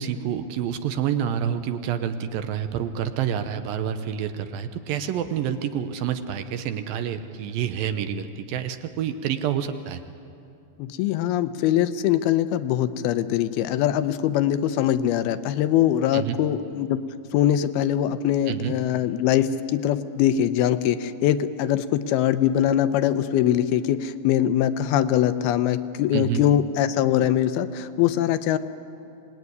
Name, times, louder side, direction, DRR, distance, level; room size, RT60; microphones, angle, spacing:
voice 1, 0.0-10.0 16.1-16.4 18.5-18.8 26.1-26.4, right 9 dB, 75° right, 9 dB, 2.4 m, -28 dB
voice 2, 10.8-17.0 17.3-28.6, left 11 dB, 80° left, 12 dB, 2.6 m, -22 dB
26.0 x 19.5 x 9.6 m, 2.6 s
omnidirectional pair, 4.5 m